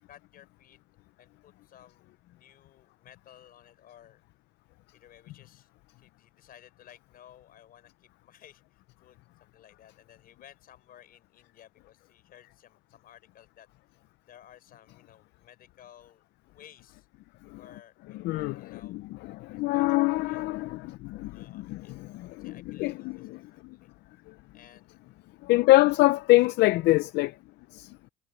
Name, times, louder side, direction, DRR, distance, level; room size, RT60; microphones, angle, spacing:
voice 1, 0.1-0.8 1.2-4.2 4.9-5.7 6.0-13.7 14.2-17.1 17.5-19.1 19.5-20.7 21.3-21.9 22.2-23.9 24.5-25.0, left 11 dB, 60° left, 5.7 m, -56 dB
voice 2, 18.2-19.0 19.4-22.5 22.8-23.4 25.4-27.3 27.7-27.9, left 19 dB, 80° left, 0.5 m, -24 dB
cardioid pair, 110°, 17 cm